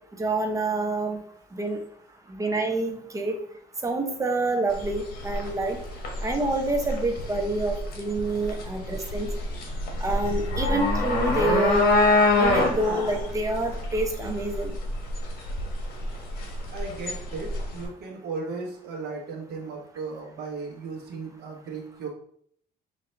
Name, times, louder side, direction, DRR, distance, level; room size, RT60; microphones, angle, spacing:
voice 1, 0.2-1.2 1.5-1.8 2.3-3.3 3.8-5.8 6.2-9.3 10.0-11.8 12.4-14.7, right 2 dB, 20° right, 4 dB, 0.8 m, -27 dB
sound 1, 4.7-17.8, left 2 dB, 60° left, 1.3 m, -26 dB
voice 2, 16.7-22.1, right 4 dB, 75° right, -1 dB, 1.1 m, -36 dB
5.4 x 2.7 x 3.3 m, 0.64 s
cardioid pair, 110°, 17 cm